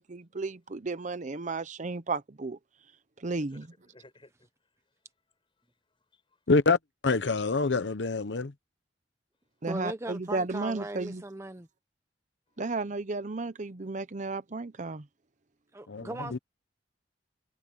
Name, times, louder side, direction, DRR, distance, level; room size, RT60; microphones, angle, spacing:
voice 1, 0.0-2.6 3.2-3.7 9.6-11.2 12.6-15.1, right 3 dB, 45° right, 0.8 m, -33 dB
voice 2, 3.3-6.4 12.5-12.6, left 2 dB, 30° left, 6.5 m, -61 dB
voice 3, 6.5-6.8 7.0-8.5 15.9-16.4, left 3 dB, 85° left, 0.8 m, -26 dB
voice 4, 9.7-11.7 15.7-16.4, right 2 dB, 15° right, 0.9 m, -38 dB
head